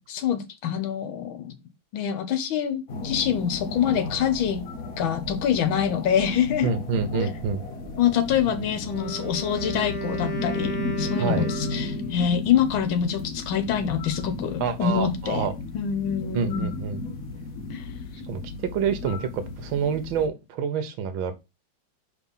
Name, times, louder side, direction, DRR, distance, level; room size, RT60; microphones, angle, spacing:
voice 1, 0.1-1.6 1.9-4.6 5.0-6.7 7.1-7.3 8.0-15.5 15.7-16.7 17.7-17.8, left 8 dB, 80° left, 1.7 m, -25 dB
sound 1, 2.9-20.3, left 3 dB, 50° left, 1.2 m, -34 dB
voice 2, 6.6-7.6 11.2-11.5 14.6-15.5 16.3-17.0 18.3-21.4, right 6 dB, 90° right, 1.6 m, -27 dB
Wind instrument woodwind instrument, 8.8-12.3, right 3 dB, 25° left, 1.7 m, -34 dB
4.9 x 3.6 x 5.4 m
omnidirectional pair, 2.2 m